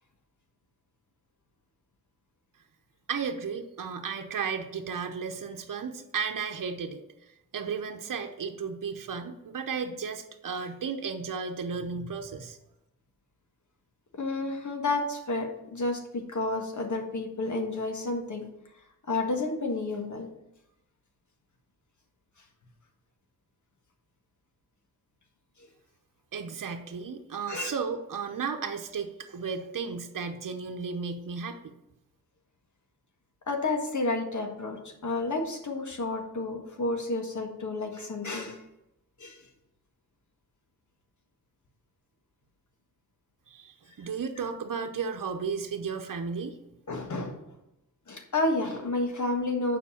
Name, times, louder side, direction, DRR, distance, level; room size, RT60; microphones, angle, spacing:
voice 1, 3.1-7.0 7.5-12.6 26.3-31.7 43.5-46.6, right 5 dB, 70° right, 5 dB, 0.9 m, -34 dB
voice 2, 14.2-18.4 19.1-20.3 27.5-27.7 33.5-38.6 39.2-39.4 46.9-47.4 48.1-49.8, left 2 dB, 60° left, 3 dB, 1.6 m, -30 dB
7.2 x 5.4 x 7.0 m, 0.90 s
wide cardioid pair, 100°, 33 cm